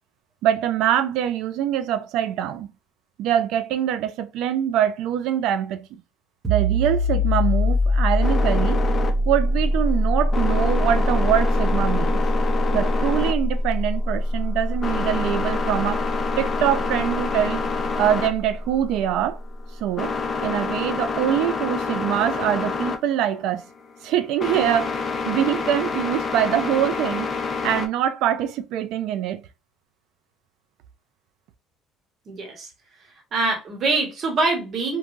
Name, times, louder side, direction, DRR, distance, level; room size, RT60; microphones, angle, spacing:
voice 1, 0.4-2.7 3.2-6.0 6.5-8.8 9.3-12.2 12.7-16.0 16.4-17.6 18.0-19.4 19.8-20.1 20.4-23.6 24.0-24.9 25.2-27.3 27.6-29.4, right 10 dB, 70° right, 0.4 m, -24 dB
sound 1, 6.4-17.9, left 1 dB, 15° right, 0.7 m, -23 dB
sound 2, 8.2-27.9, left 4 dB, 25° left, 0.4 m, -28 dB
voice 2, 32.3-32.7 33.3-35.0, right 3 dB, 40° right, 1.0 m, -24 dB
3.1 x 2.2 x 2.5 m
cardioid pair, 145°, 0 cm